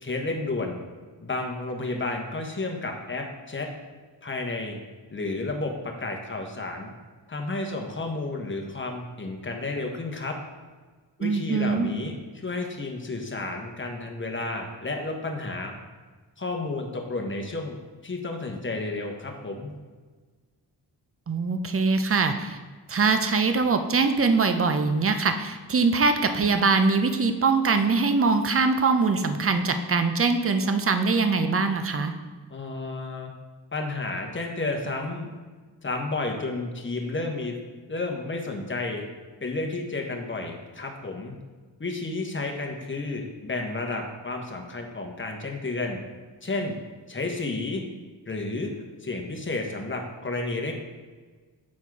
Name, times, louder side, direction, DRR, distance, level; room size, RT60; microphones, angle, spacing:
voice 1, 0.0-0.8 1.2-3.7 4.2-4.8 5.1-6.9 7.3-10.4 11.2-12.2 12.4-15.7 16.4-17.8 18.0-19.7 32.5-33.3 33.7-35.3 35.8-37.6 37.9-39.0 39.4-41.3 41.8-46.0 46.4-46.8 47.1-47.8 48.3-48.7 49.0-50.7, left 2 dB, 25° left, 2 dB, 1.1 m, -31 dB
voice 2, 11.2-11.9 21.3-22.6 22.9-32.1, right 4 dB, 30° right, 7 dB, 0.6 m, -23 dB
7.3 x 4.3 x 4.7 m, 1.4 s
wide cardioid pair, 80°, 44 cm